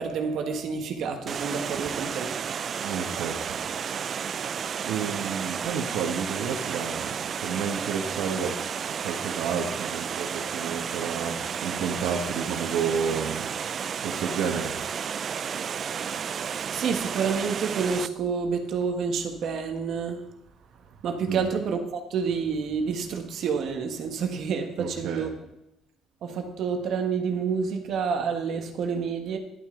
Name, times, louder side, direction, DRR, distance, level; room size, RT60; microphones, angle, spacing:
voice 1, 0.0-2.3 16.7-20.2 21.0-25.3 26.2-29.4, right 6 dB, 50° right, 5 dB, 1.5 m, -28 dB
Water, 1.3-18.1, right 7 dB, 35° right, 0.3 m, -32 dB
voice 2, 2.8-3.6 4.9-8.6 9.0-13.5 14.0-14.8 21.3-21.5 24.8-25.3, right 6 dB, 75° right, 1 dB, 1.5 m, -31 dB
11.5 x 11.0 x 3.9 m, 0.86 s
cardioid pair, 175°, 0 cm